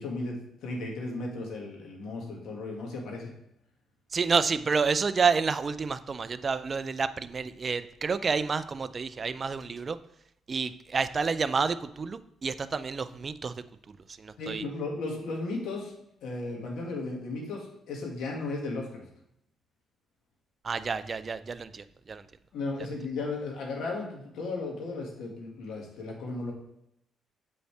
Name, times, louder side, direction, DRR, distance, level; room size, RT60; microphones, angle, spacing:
voice 1, 0.0-3.3 14.4-15.9 16.2-19.0 22.5-26.5, left 3 dB, 80° left, 0 dB, 1.9 m, -35 dB
voice 2, 4.1-10.0 10.5-13.5 14.1-14.6 20.6-22.2, right 5 dB, 40° right, 13 dB, 0.4 m, -29 dB
7.6 x 5.4 x 3.3 m, 0.79 s
cardioid pair, 90°, 0 cm